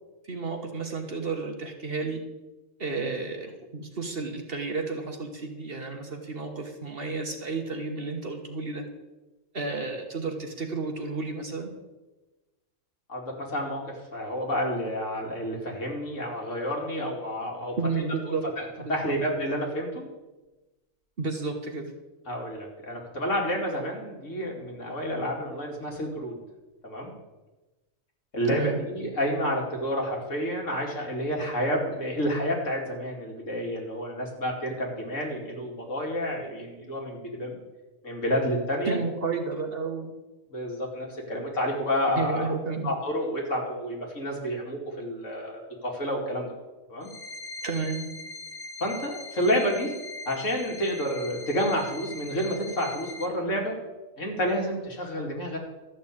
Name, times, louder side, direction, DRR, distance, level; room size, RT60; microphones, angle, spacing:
voice 1, 0.2-2.2 2.8-8.8 9.5-11.7 17.8-18.4 18.8-19.2 21.2-21.9 28.5-28.8 38.9-40.1 42.2-42.9 47.6-48.1, right 4 dB, 45° right, 4 dB, 1.5 m, -32 dB
voice 2, 13.1-20.0 22.3-26.4 26.8-27.1 28.3-37.6 38.0-39.0 40.5-42.5 42.8-46.5 46.9-47.1 48.8-49.9 50.3-53.8 54.2-55.6, equal, 65° left, 0 dB, 2.8 m, -29 dB
sound 1, 47.0-53.2, left 3 dB, 35° left, 1.1 m, -41 dB
13.0 x 6.2 x 8.4 m, 1.1 s
omnidirectional pair, 1.4 m